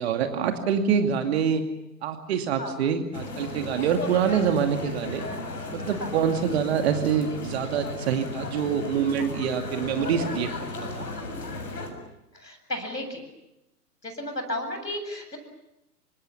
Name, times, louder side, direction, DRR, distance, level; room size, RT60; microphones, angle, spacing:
voice 1, 0.0-1.6 2.0-5.3 5.7-10.5 10.9-11.0, right 7 dB, 40° right, 6 dB, 2.5 m, -25 dB
sound 1, 3.1-11.9, left 2 dB, 70° left, 7.0 m, -35 dB
voice 2, 12.3-13.2 14.0-15.4, left 1 dB, 85° left, 6 dB, 7.6 m, -33 dB
30.0 x 25.5 x 7.2 m, 0.89 s
figure-of-eight pair, 115°, 49 cm